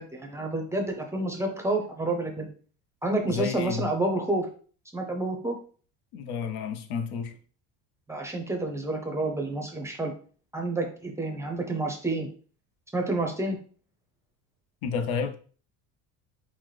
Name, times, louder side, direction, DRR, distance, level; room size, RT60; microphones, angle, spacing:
voice 1, 0.0-2.5 3.0-4.5 4.9-5.5 8.1-10.1 10.5-12.3 12.9-13.6, right 2 dB, 5° right, 0.6 m, -29 dB
voice 2, 3.3-3.9 6.1-7.3 14.8-15.3, left 5 dB, 70° left, 0.7 m, -31 dB
5.5 x 2.1 x 3.2 m
cardioid pair, 125°, 38 cm